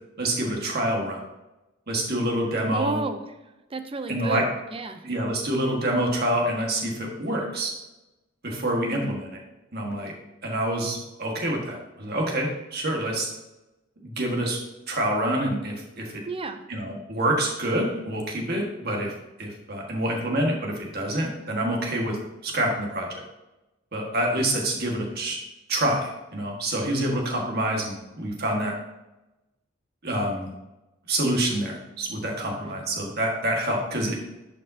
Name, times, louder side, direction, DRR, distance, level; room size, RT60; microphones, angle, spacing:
voice 1, 0.2-1.2 1.9-3.0 4.1-4.5 5.0-7.7 8.4-9.3 9.7-10.1 10.4-13.3 14.0-14.6 14.9-16.2 16.7-19.1 19.4-22.2 22.4-23.1 23.9-25.4 25.7-28.7 30.0-30.5 31.1-34.2, right 1 dB, 55° right, 0 dB, 1.7 m, -27 dB
voice 2, 2.7-3.3 3.7-5.0 8.8-9.2 16.3-16.6, right 3 dB, 30° right, 8 dB, 0.6 m, -32 dB
11.0 x 5.3 x 2.8 m, 0.99 s
head